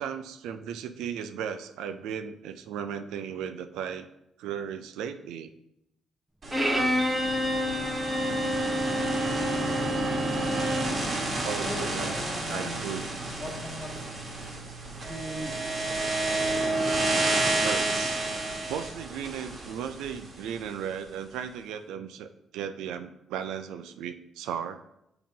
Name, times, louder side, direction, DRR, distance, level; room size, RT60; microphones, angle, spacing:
voice 1, 0.0-4.1 4.4-5.5 11.4-12.1 12.5-13.0 17.0-18.2 18.7-24.8, right 8 dB, 90° right, 9 dB, 0.4 m, -36 dB
sound 1, 6.4-20.6, right 2 dB, 40° right, 1.6 m, -30 dB
Bowed string instrument, 6.5-11.0, equal, 5° right, 1.0 m, -28 dB
sound 2, 11.0-16.8, right 5 dB, 65° right, 1.1 m, -46 dB
voice 2, 11.6-14.1 15.1-15.9, left 1 dB, 20° left, 0 dB, 2.1 m, -40 dB
7.3 x 2.9 x 5.4 m, 0.83 s
cardioid pair, 90°, 0 cm